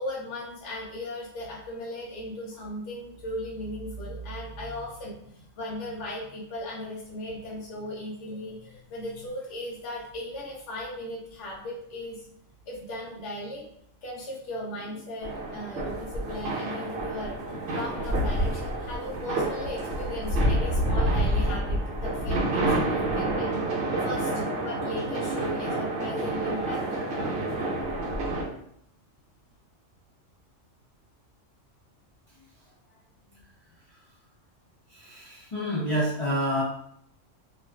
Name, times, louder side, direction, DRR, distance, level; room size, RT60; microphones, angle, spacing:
voice 1, 0.0-12.2 12.7-13.7 14.0-17.4 17.7-23.5 24.0-24.3 24.6-26.8, left 1 dB, 70° left, -4 dB, 1.0 m, -37 dB
sound 1, 15.2-28.4, right 1 dB, 60° right, 0.9 m, -28 dB
voice 2, 34.9-36.6, equal, 35° left, -10 dB, 0.5 m, -29 dB
2.4 x 2.3 x 2.2 m, 0.71 s
omnidirectional pair, 1.3 m